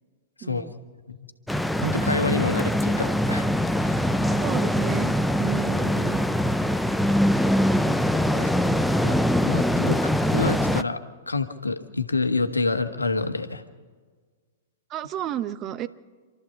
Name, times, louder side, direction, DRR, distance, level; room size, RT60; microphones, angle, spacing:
voice 1, 0.4-0.7 4.4-5.1 5.4-6.2 14.9-15.9, right 11 dB, 30° right, 14 dB, 0.9 m, -32 dB
sound 1, 1.5-10.8, equal, ahead, 0.6 m, -23 dB
voice 2, 1.8-3.5 8.3-8.5 9.0-9.2 9.5-13.6, left 3 dB, 85° left, 7 dB, 1.5 m, -27 dB
27.5 x 13.5 x 7.3 m, 1.6 s
figure-of-eight pair, 105°, 0 cm